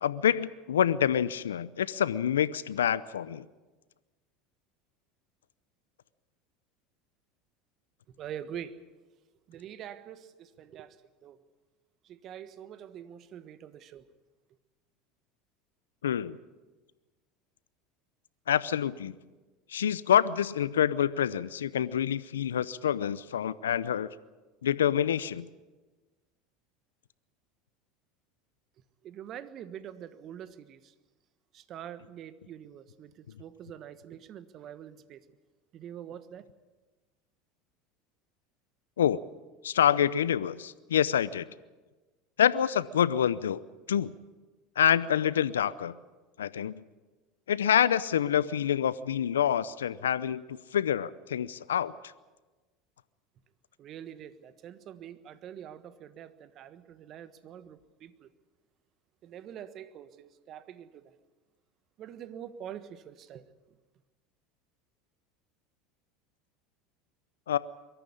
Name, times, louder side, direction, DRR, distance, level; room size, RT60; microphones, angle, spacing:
voice 1, 0.0-3.4 16.0-16.4 18.5-19.1 19.7-24.1 24.6-25.4 39.0-39.2 39.6-41.5 42.4-43.6 43.9-44.1 44.8-45.9 46.4-46.8 47.5-51.9 67.5-67.6, left 9 dB, 85° left, 18 dB, 0.6 m, -27 dB
voice 2, 8.1-8.8 9.5-11.4 12.0-14.0 29.0-30.9 31.5-35.2 35.7-36.5 53.8-58.3 59.2-61.1 62.0-63.4, right 9 dB, 45° right, 13 dB, 1.4 m, -45 dB
23.0 x 14.0 x 9.8 m, 1.3 s
hypercardioid pair, 80°, 0 cm